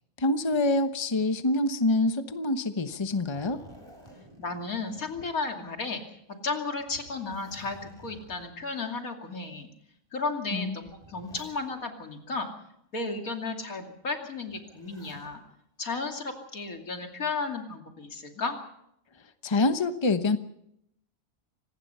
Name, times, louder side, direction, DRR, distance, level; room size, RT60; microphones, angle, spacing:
voice 1, 0.2-3.6 10.5-10.8 19.4-20.4, left 2 dB, 20° left, 9 dB, 1.0 m, -26 dB
Zipper (clothing), 2.9-5.8 6.2-6.3 6.8-8.6 9.4-9.5 10.5-12.0 14.5-15.4 16.8-17.2, equal, 20° right, 4.4 m, -53 dB
voice 2, 4.4-6.0 6.4-9.7 10.1-12.5 12.9-15.4 15.8-18.6, left 3 dB, 90° left, 3 dB, 3.1 m, -34 dB
26.0 x 19.0 x 5.6 m, 0.75 s
omnidirectional pair, 1.4 m